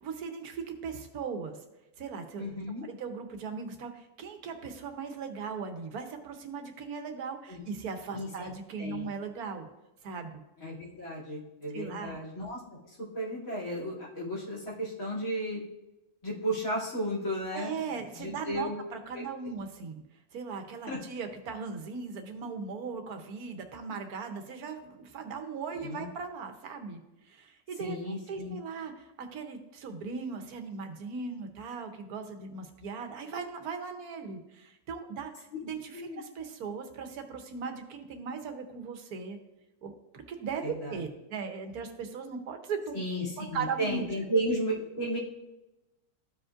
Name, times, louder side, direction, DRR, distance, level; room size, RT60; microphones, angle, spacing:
voice 1, 0.0-1.6 2.0-2.6 2.8-9.7 10.0-10.4 11.7-12.2 17.5-20.0 20.3-27.0 27.3-39.4 39.8-43.0 43.4-44.1, right 5 dB, 80° right, 6 dB, 1.4 m, -38 dB
voice 2, 2.4-2.9 7.5-7.6 8.1-8.5 8.8-9.1 10.6-15.6 16.2-17.7 18.1-18.8 19.1-19.2 20.9-21.0 25.8-26.0 27.8-28.6 35.9-36.2 40.6-40.9 42.9-45.2, right 1 dB, 60° left, -6 dB, 3.1 m, -34 dB
13.5 x 5.1 x 2.5 m, 0.97 s
omnidirectional pair, 1.6 m